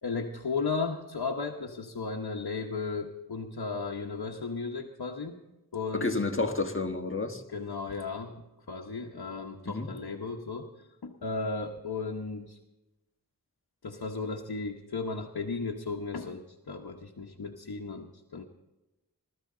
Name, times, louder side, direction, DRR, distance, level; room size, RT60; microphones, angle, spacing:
voice 1, 0.0-5.4 5.7-6.2 7.5-8.4 8.7-10.7 11.0-12.6 13.8-18.4, left 4 dB, 75° left, 1.1 m, -35 dB
voice 2, 5.9-7.4 9.6-9.9, left 3 dB, 35° left, 1.6 m, -30 dB
21.0 x 13.5 x 3.8 m
wide cardioid pair, 40°, 37 cm